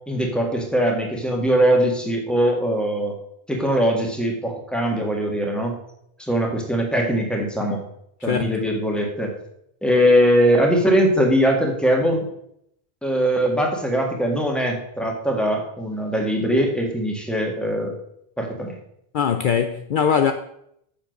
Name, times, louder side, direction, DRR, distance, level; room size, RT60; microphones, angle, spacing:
voice 1, 0.1-3.2 3.5-5.8 6.2-7.8 8.2-9.3 9.8-12.3 13.0-17.9 18.4-18.7, equal, ahead, 1.9 m, -21 dB
voice 2, 19.1-20.3, left 7 dB, 60° left, 0.7 m, -21 dB
7.4 x 7.2 x 6.5 m
omnidirectional pair, 1.0 m